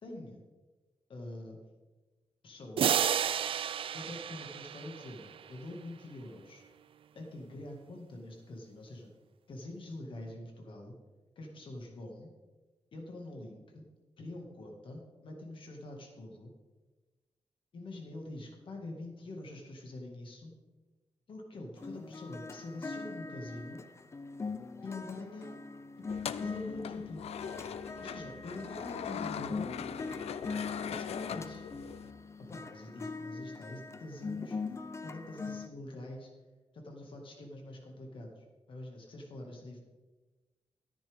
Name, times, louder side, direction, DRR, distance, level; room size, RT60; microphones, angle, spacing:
voice 1, 0.0-0.4 1.1-1.6 2.4-3.1 3.9-6.6 7.1-9.1 9.5-10.9 11.4-12.3 12.9-13.8 14.2-16.5 17.7-20.5 21.3-23.8 24.8-25.5 26.3-27.2 28.0-29.7 30.8-31.6 32.5-34.6 35.0-36.3 36.7-39.8, left 2 dB, 55° left, 1 dB, 2.0 m, -45 dB
sound 1, 2.8-5.5, right 8 dB, 60° right, 0.4 m, -31 dB
sound 2, 21.8-35.7, left 4 dB, 25° left, 0.5 m, -41 dB
sound 3, 26.1-32.1, left 8 dB, 85° left, 0.5 m, -41 dB
14.0 x 9.9 x 3.6 m, 1.2 s
wide cardioid pair, 170°, 10 cm